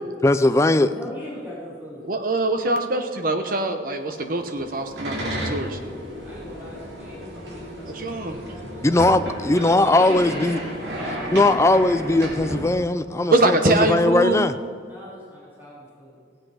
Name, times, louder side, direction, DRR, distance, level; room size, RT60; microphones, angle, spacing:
voice 1, 0.2-0.9 8.8-10.6 11.3-14.5, left 2 dB, 15° left, 10 dB, 0.4 m, -19 dB
voice 2, 0.9-2.1 6.2-11.6 14.8-16.2, equal, 10° right, -9 dB, 3.3 m, -40 dB
voice 3, 2.0-5.8 7.9-8.4 13.3-14.4, right 2 dB, 50° right, 6 dB, 1.0 m, -23 dB
sound 1, 4.4-12.7, equal, 80° right, 2.6 m, -33 dB
16.5 x 8.0 x 5.0 m, 2.2 s
head